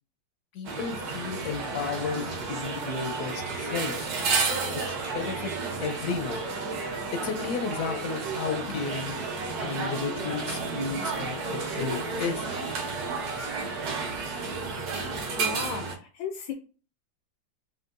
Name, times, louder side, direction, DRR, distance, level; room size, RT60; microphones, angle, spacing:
voice 1, 0.5-4.1 4.7-5.5 5.8-6.4 7.1-9.1 9.6-12.5, left 5 dB, 70° left, 5 dB, 0.9 m, -33 dB
sound 1, 0.6-15.9, right 4 dB, 65° right, 1.2 m, -32 dB
voice 2, 15.4-16.5, left 5 dB, 85° left, 5 dB, 1.3 m, -35 dB
4.4 x 2.4 x 2.5 m, 0.37 s
omnidirectional pair, 2.0 m